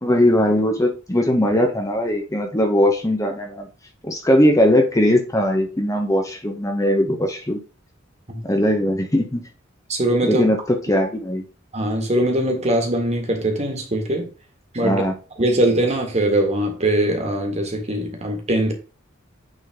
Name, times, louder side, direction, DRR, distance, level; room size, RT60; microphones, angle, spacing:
voice 1, 0.0-3.7 4.0-7.6 8.4-9.4 10.2-11.4 14.8-15.1, left 1 dB, 15° left, 3 dB, 0.8 m, -19 dB
voice 2, 9.9-10.4 11.7-14.3 14.7-15.0 15.4-18.7, right 1 dB, 35° right, 3 dB, 1.7 m, -21 dB
8.9 x 3.9 x 3.5 m, 0.34 s
head